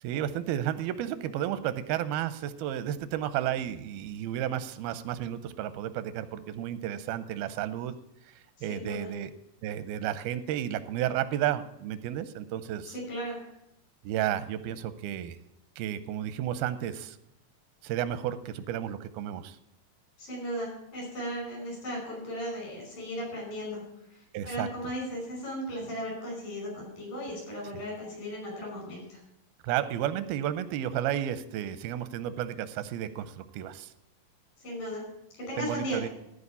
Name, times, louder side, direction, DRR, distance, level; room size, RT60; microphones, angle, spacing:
voice 1, 0.0-7.9 8.6-9.3 9.6-12.9 14.0-15.4 15.8-17.2 17.8-19.6 24.3-24.7 29.6-33.9 35.6-36.1, right 11 dB, 90° right, 13 dB, 2.5 m, -32 dB
voice 2, 8.6-9.1 12.9-13.4 20.2-23.8 24.5-29.2 34.6-35.0 35.4-36.0, equal, 65° left, -2 dB, 7.0 m, -36 dB
14.0 x 4.7 x 8.2 m, 0.81 s
omnidirectional pair, 4.3 m